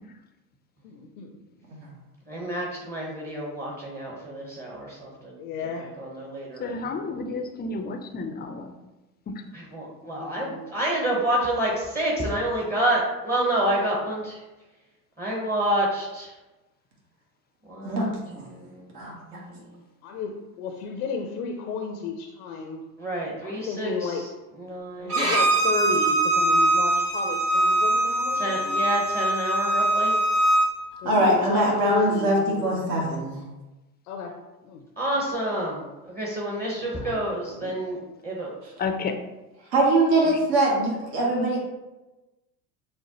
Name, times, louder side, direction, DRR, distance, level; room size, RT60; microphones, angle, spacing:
voice 1, 0.8-1.4 5.4-5.9 7.0-7.2 9.9-10.7 20.0-22.8 23.4-24.2 25.0-28.8 31.0-33.0 34.1-34.3 34.6-34.8 36.9-37.2 37.6-37.7, left 5 dB, 75° left, 4 dB, 0.6 m, -33 dB
voice 2, 2.3-5.3 6.0-6.9 9.5-14.4 15.2-16.3 17.7-18.1 18.4-18.9 19.3-19.7 23.0-24.2 24.6-25.3 28.4-30.2 35.0-35.8 36.1-38.0 38.2-38.5, right 1 dB, 20° right, -3 dB, 1.1 m, -28 dB
voice 3, 6.6-8.7 9.3-9.4 31.0-31.6 38.8-39.2 40.3-40.4, left 4 dB, 20° left, 6 dB, 0.5 m, -32 dB
Bowed string instrument, 25.1-30.7, right 2 dB, 85° right, 1.4 m, -22 dB
voice 4, 31.0-32.4 32.6-33.4 39.7-41.6, right 1 dB, 60° right, -3 dB, 1.5 m, -22 dB
6.2 x 2.1 x 3.0 m, 1.1 s
hypercardioid pair, 75°, 45 cm